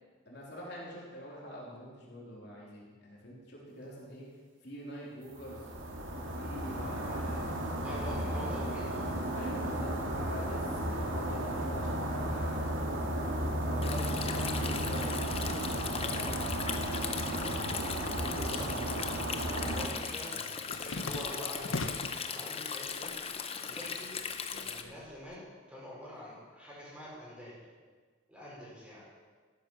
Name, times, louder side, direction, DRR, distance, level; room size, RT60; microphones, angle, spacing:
voice 1, 0.3-4.3 4.6-5.6 6.2-7.7 9.3-12.6 13.0-16.3 18.2-18.8 19.3-19.8, equal, 55° left, -5 dB, 3.5 m, -45 dB
sound 1, 5.3-19.9, right 1 dB, 80° right, 2.1 m, -34 dB
voice 2, 7.8-9.3 18.4-19.0 19.7-20.4 20.7-23.1 23.6-24.1 24.6-27.6 28.3-29.0, equal, 5° right, -7 dB, 5.0 m, -45 dB
Stream, 13.8-24.8, left 6 dB, 30° left, 0.8 m, -38 dB
sound 2, 20.3-22.3 22.7-23.4 23.7-25.4, left 3 dB, 80° left, 1.0 m, -41 dB
14.0 x 11.0 x 6.2 m, 1.5 s
head